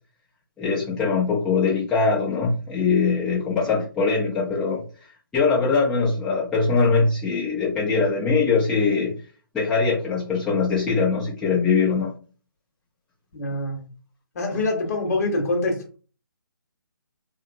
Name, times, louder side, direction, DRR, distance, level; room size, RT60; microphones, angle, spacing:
voice 1, 0.6-4.8 5.3-9.2 9.5-12.1, left 4 dB, 5° left, -8 dB, 0.4 m, -22 dB
voice 2, 13.3-13.8 14.3-16.0, left 2 dB, 45° left, 2 dB, 0.9 m, -25 dB
2.7 x 2.0 x 2.5 m, 0.37 s
figure-of-eight pair, 150°, 12 cm